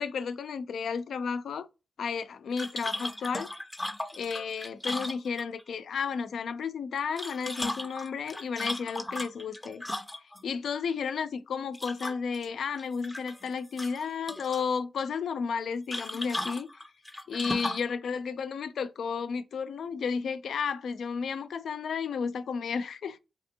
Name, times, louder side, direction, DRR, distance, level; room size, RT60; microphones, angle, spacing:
voice 1, 0.0-1.7 2.0-3.5 4.1-9.8 10.4-16.8 17.3-23.2, left 6 dB, 90° left, 0.3 m, -33 dB
sound 1, 2.6-5.7 7.0-10.4 11.7-12.5 12.8-13.5 13.8-14.6 15.9-17.9, left 1 dB, 10° left, 0.5 m, -36 dB
3.4 x 2.9 x 2.7 m
wide cardioid pair, 125°, 0 cm